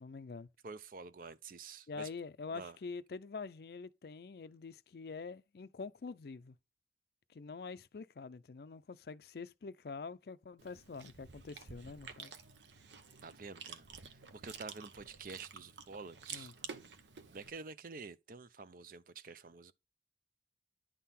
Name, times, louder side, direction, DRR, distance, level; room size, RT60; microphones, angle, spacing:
voice 1, 0.0-0.5 1.9-6.6 7.3-12.3 16.3-16.5, left 4 dB, 60° left, 0.4 m, -46 dB
voice 2, 0.6-2.1 2.5-2.8 13.2-16.5 17.3-19.7, right 4 dB, 50° right, 0.6 m, -49 dB
Chewing mastication, 10.6-17.5, right 6 dB, 85° right, 0.9 m, -51 dB
10.0 x 3.7 x 4.2 m
head